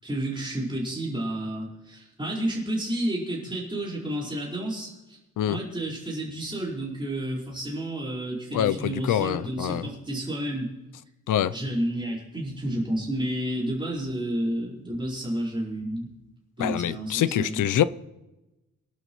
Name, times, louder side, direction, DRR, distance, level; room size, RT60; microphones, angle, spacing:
voice 1, 0.0-5.2 5.5-10.7 11.5-16.1 16.6-17.8, right 1 dB, 15° right, 4.7 m, -31 dB
voice 2, 8.5-9.8 11.3-11.5 16.6-17.8, left 11 dB, 70° left, 0.6 m, -25 dB
25.0 x 11.5 x 3.1 m
wide cardioid pair, 175°, 32 cm